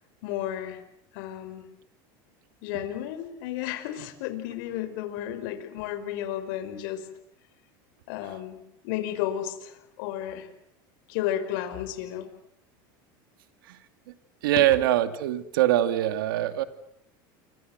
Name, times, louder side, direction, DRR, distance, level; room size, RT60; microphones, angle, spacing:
voice 1, 0.2-0.8 1.1-1.6 2.6-7.1 8.1-8.6 8.8-10.5 11.1-12.3 14.6-14.7, left 11 dB, 70° left, 9 dB, 5.4 m, -32 dB
voice 2, 14.4-16.6, right 13 dB, 85° right, 11 dB, 2.4 m, -23 dB
29.5 x 25.0 x 8.1 m, 0.73 s
supercardioid pair, 120°, 11 cm